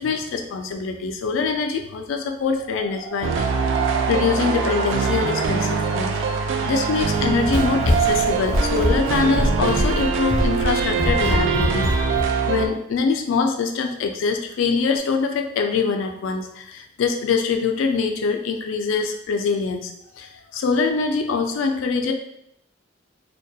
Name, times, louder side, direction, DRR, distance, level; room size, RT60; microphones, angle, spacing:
voice 1, 0.0-3.5 4.1-6.2 6.6-12.0 12.5-22.1, left 4 dB, 90° left, 4 dB, 0.3 m, -24 dB
sound 1, 2.4-12.3, right 4 dB, 30° right, 0.6 m, -39 dB
sound 2, 3.2-12.7, right 5 dB, 80° right, 0.3 m, -23 dB
Run, 7.1-12.3, left 1 dB, 20° left, 0.5 m, -24 dB
2.2 x 2.1 x 2.6 m, 0.78 s
head